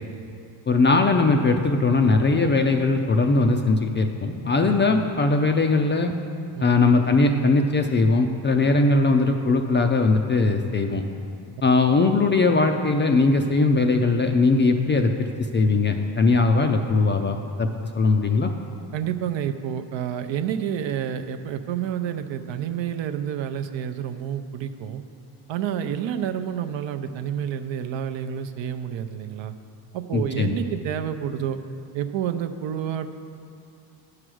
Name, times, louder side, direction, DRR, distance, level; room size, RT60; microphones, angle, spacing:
voice 1, 0.7-6.1 6.6-11.0 11.6-17.7 18.0-18.5 30.1-30.6, left 3 dB, 25° left, 5 dB, 0.3 m, -20 dB
voice 2, 4.6-5.0 6.6-6.8 18.9-25.0 25.5-29.5 29.9-31.6 31.9-33.1, right 9 dB, 65° right, 8 dB, 0.6 m, -29 dB
10.0 x 4.9 x 6.2 m, 2.5 s
cardioid pair, 100°, 49 cm